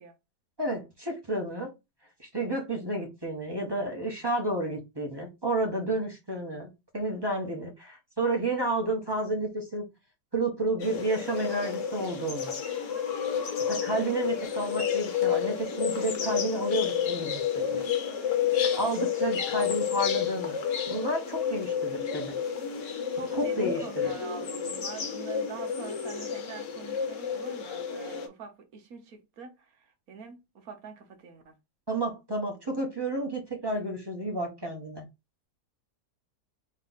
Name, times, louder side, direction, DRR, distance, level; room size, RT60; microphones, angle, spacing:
voice 1, 0.6-1.7 2.2-9.8 10.3-12.6 13.7-17.8 18.8-20.6 20.9-22.3 23.3-24.2 31.9-35.1, right 2 dB, 15° right, 1.0 m, -31 dB
sound 1, 10.8-28.3, left 8 dB, 55° left, 1.1 m, -30 dB
voice 2, 23.1-29.5 30.1-31.5, right 5 dB, 60° right, 1.1 m, -44 dB
3.2 x 3.2 x 4.0 m
omnidirectional pair, 1.9 m